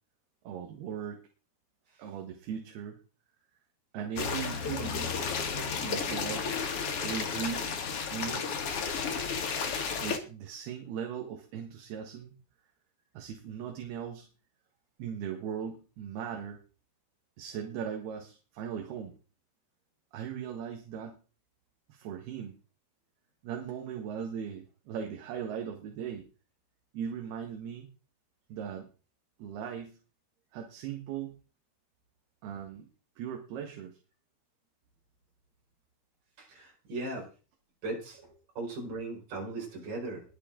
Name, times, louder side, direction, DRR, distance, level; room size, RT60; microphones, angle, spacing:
voice 1, 0.5-1.2 2.0-3.0 3.9-5.2 5.8-6.5 7.0-7.7 8.1-8.5 10.0-12.3 13.2-14.3 15.0-16.6 17.4-19.2 20.1-21.2 21.9-22.6 23.4-26.3 26.9-27.9 28.5-28.9 29.4-30.0 30.5-31.4 32.4-32.9 33.2-34.0, right 8 dB, 75° right, 2 dB, 3.5 m, -38 dB
sound 1, 4.2-10.2, left 5 dB, 50° left, 1.7 m, -32 dB
voice 2, 36.4-37.3 37.8-40.2, right 2 dB, 55° right, -1 dB, 6.3 m, -38 dB
21.5 x 7.2 x 3.9 m, 0.34 s
omnidirectional pair, 4.7 m